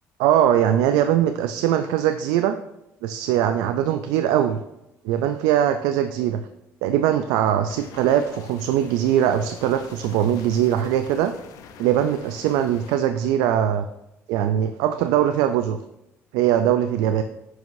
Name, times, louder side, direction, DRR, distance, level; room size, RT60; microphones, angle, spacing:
voice 1, 0.2-2.6 3.0-4.6 5.0-6.4 6.8-11.4 11.8-13.9 14.3-15.8 16.3-17.2, right 10 dB, 90° right, 8 dB, 0.3 m, -21 dB
sound 1, 7.7-13.0, left 7 dB, 75° left, 0.7 m, -45 dB
11.0 x 4.7 x 2.6 m, 0.89 s
cardioid pair, 105°, 6 cm